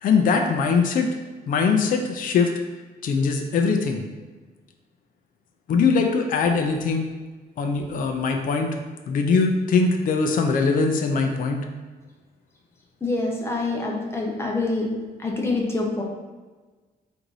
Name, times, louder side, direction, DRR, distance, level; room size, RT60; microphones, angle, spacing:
voice 1, 0.0-1.1 1.5-2.5 3.0-4.1 5.7-7.1 7.6-8.7 9.1-11.7, left 4 dB, 55° left, 3 dB, 0.4 m, -21 dB
voice 2, 13.0-14.9 15.2-16.0, left 2 dB, 15° left, -1 dB, 0.7 m, -26 dB
3.9 x 2.6 x 4.6 m, 1.3 s
wide cardioid pair, 165°, 17 cm